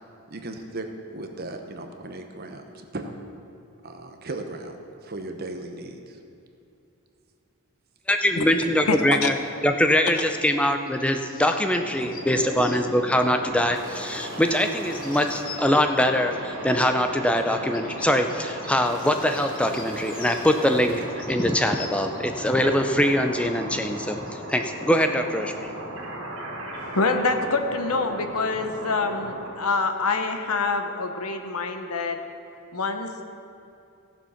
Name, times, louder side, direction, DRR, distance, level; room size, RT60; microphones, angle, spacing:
voice 1, 0.3-2.6 2.9-3.2 3.8-4.8 5.0-6.0, right 2 dB, 45° right, 5 dB, 0.9 m, -36 dB
voice 2, 8.1-9.3 9.6-25.7, left 1 dB, 5° left, 6 dB, 0.5 m, -23 dB
voice 3, 8.9-9.3 26.9-32.2 32.7-33.2, left 3 dB, 80° left, 7 dB, 0.9 m, -26 dB
sound 1, 10.4-12.8 14.0-16.0 17.2-20.5 20.8-22.4 23.3-23.4 23.7-24.7, left 5 dB, 40° left, 1.1 m, -45 dB
sound 2, 11.8-29.5, right 1 dB, 70° right, 2.4 m, -37 dB
15.0 x 7.1 x 5.7 m, 2.7 s
head